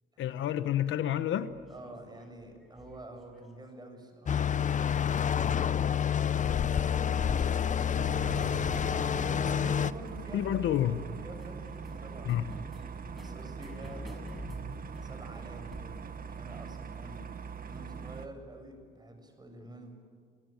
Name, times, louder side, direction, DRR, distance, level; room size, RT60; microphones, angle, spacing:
voice 1, 0.2-1.5 10.3-11.0 12.3-12.5, left 11 dB, 75° left, 12 dB, 1.1 m, -29 dB
sound 1, 1.5-3.9 4.8-5.3 6.5-6.6 7.0-7.1 7.4-7.5 7.8-17.6, equal, ahead, 6.4 m, -48 dB
voice 2, 1.7-5.6 6.6-8.2 9.3-10.6 10.8-12.5 13.1-14.7 15.0-17.2 17.6-19.9, right 1 dB, 20° right, 5 dB, 6.9 m, -48 dB
sound 2, 4.3-9.9, left 8 dB, 40° left, 0.7 m, -28 dB
sound 3, 8.0-18.3, right 6 dB, 45° right, 1.7 m, -42 dB
30.0 x 18.0 x 8.9 m, 2.1 s
cardioid pair, 90°, 20 cm